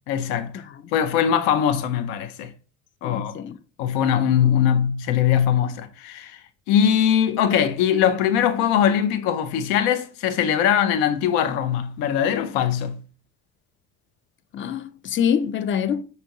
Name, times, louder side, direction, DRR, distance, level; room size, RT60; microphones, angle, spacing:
voice 1, 0.1-0.6 0.9-2.5 3.0-3.4 3.8-6.4 6.7-13.0, left 9 dB, 80° left, 0.6 m, -21 dB
voice 2, 3.0-3.6 14.5-16.0, left 8 dB, 35° left, 0.4 m, -25 dB
5.1 x 2.7 x 2.8 m
supercardioid pair, 80°, 36 cm